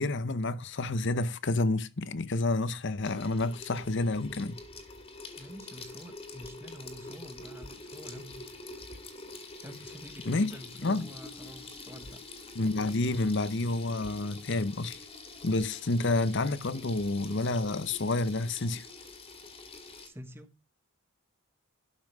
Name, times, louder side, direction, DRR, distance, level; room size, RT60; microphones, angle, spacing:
voice 1, 0.0-4.6 10.3-10.6 10.8-11.1 12.5-15.0 15.4-18.8, left 2 dB, 55° left, 0.8 m, -29 dB
Water tap faucet / Sink (filling or washing), 3.0-20.1, left 3 dB, 25° left, 2.2 m, -46 dB
voice 2, 5.4-8.5 9.6-12.2 20.0-20.5, equal, 10° right, 1.3 m, -48 dB
12.5 x 5.7 x 5.4 m
head